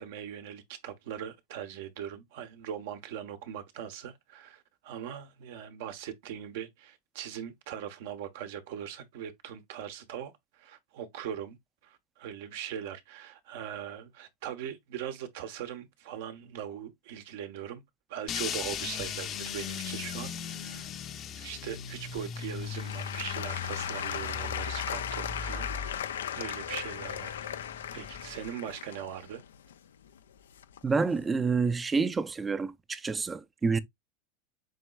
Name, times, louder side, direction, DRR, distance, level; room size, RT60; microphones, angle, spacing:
voice 1, 0.0-11.6 11.8-17.8 18.1-20.9 21.4-27.6 27.9-29.4, right 9 dB, 70° right, 1.0 m, -40 dB
sound 1, 18.3-28.5, left 7 dB, 40° left, 0.7 m, -39 dB
Applause / Crowd, 22.2-31.0 31.7-31.8, left 9 dB, 85° left, 0.4 m, -37 dB
voice 2, 30.8-33.8, right 4 dB, 20° right, 0.5 m, -28 dB
7.5 x 3.0 x 2.3 m
hypercardioid pair, 100°, 0 cm